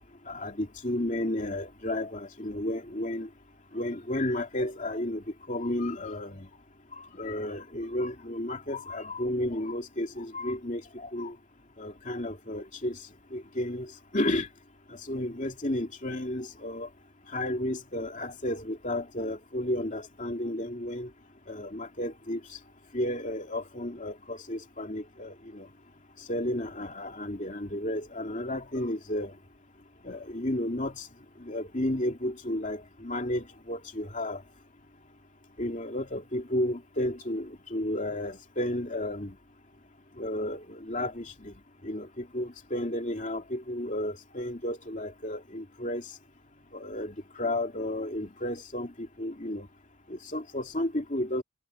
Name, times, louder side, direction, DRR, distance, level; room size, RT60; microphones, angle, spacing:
voice 1, 0.3-3.3 3.7-6.5 7.1-11.3 11.8-13.0 13.3-14.5 14.9-16.9 17.3-21.1 21.5-22.4 22.9-25.7 26.3-29.3 30.0-31.1 31.4-34.4 35.6-39.4 40.2-41.5 41.8-46.0 46.7-49.7 50.1-51.4, left 1 dB, 35° left, 2.8 m, -32 dB
head